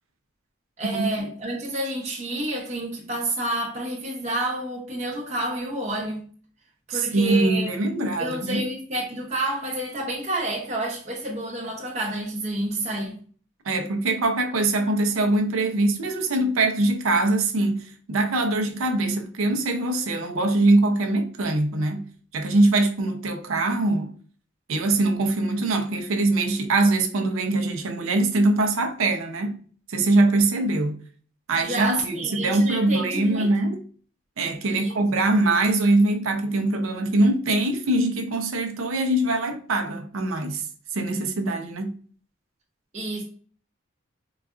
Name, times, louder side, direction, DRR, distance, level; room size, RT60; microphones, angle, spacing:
voice 1, 0.8-6.2 6.9-7.7 8.2-13.2 31.6-33.5 34.6-34.9 42.9-43.2, right 1 dB, 35° right, 0.7 m, -29 dB
voice 2, 6.9-8.6 13.7-24.1 24.7-29.6 29.9-31.0 31.5-33.8 34.4-40.6 40.9-42.0, right 2 dB, 85° right, 0.6 m, -23 dB
3.9 x 2.3 x 2.4 m
head